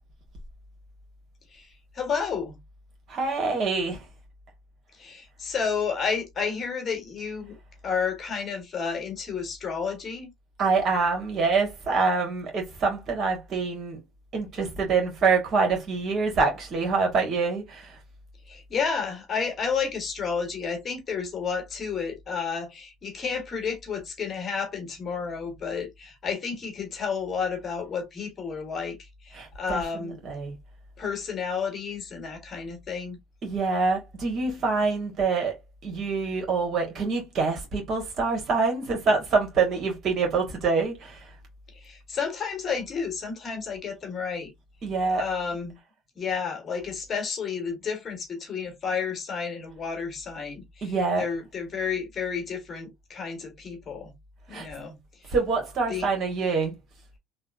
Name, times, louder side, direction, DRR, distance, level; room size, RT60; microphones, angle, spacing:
voice 1, 1.9-2.6 5.0-7.6 7.8-10.3 18.5-30.2 31.0-33.2 41.7-44.5 45.1-45.8 46.1-54.1 54.5-55.0 55.9-56.1, left 6 dB, 40° left, 1.4 m, -31 dB
voice 2, 3.1-4.0 10.6-14.0 14.3-18.0 29.3-30.6 33.4-35.6 35.8-41.2 44.8-45.2 50.8-51.2 54.5-54.7 55.3-56.7, right 4 dB, 50° right, 1.6 m, -25 dB
3.2 x 2.5 x 2.5 m
supercardioid pair, 90°, 0 cm